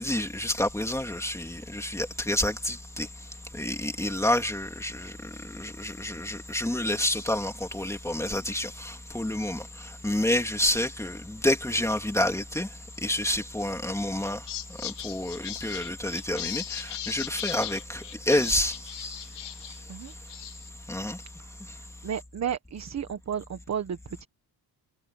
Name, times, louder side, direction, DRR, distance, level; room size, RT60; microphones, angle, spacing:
voice 1, 0.0-3.1 3.5-12.7 13.0-14.4 14.8-19.2 19.7-19.8 20.9-21.2, left 1 dB, 5° left, 2.9 m, -29 dB
sound 1, 13.6-13.9 14.2-19.8 20.1-20.7, left 13 dB, 80° left, 0.9 m, -38 dB
voice 2, 21.8-24.3, right 8 dB, 40° right, 1.3 m, -33 dB
wide cardioid pair, 170°, 41 cm